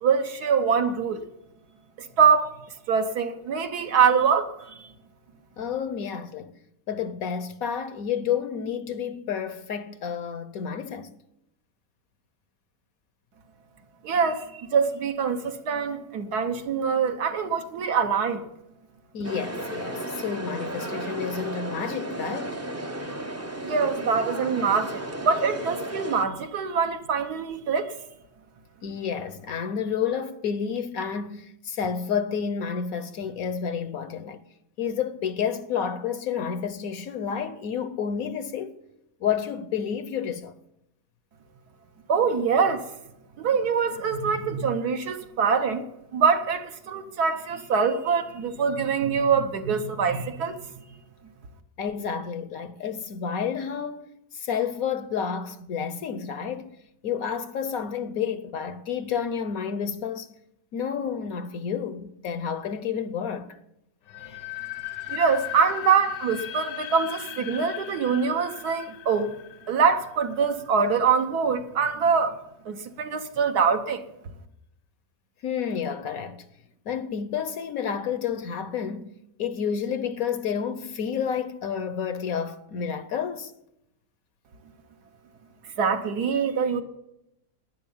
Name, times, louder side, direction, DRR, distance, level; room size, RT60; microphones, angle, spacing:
voice 1, 0.0-1.2 2.2-2.5 2.9-4.7 14.0-18.4 23.6-27.9 42.1-42.8 43.4-45.8 46.1-50.6 65.1-69.3 69.7-72.3 72.6-74.0 85.8-86.8, right 6 dB, 70° right, 1.5 m, -24 dB
voice 2, 5.6-6.6 6.9-11.1 19.1-22.6 28.8-34.4 34.8-38.8 39.2-40.5 51.8-56.8 57.0-60.3 60.7-63.5 75.4-76.4 76.9-79.1 79.4-83.5, left 7 dB, 65° left, 1.0 m, -30 dB
sound 1, 19.2-26.3, right 1 dB, 15° right, 0.5 m, -34 dB
sound 2, 64.1-70.9, left 14 dB, 80° left, 1.6 m, -37 dB
11.5 x 9.9 x 7.1 m
omnidirectional pair, 1.8 m